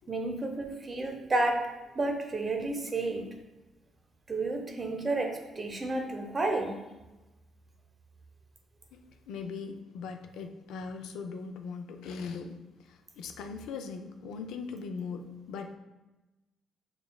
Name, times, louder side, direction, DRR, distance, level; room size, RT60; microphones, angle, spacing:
voice 1, 0.1-1.6 2.0-3.2 4.3-6.8, right 2 dB, 30° right, 3 dB, 0.6 m, -31 dB
voice 2, 8.9-15.8, left 5 dB, 85° left, 5 dB, 0.3 m, -40 dB
6.7 x 2.3 x 2.2 m, 1.1 s
cardioid pair, 90°, 0 cm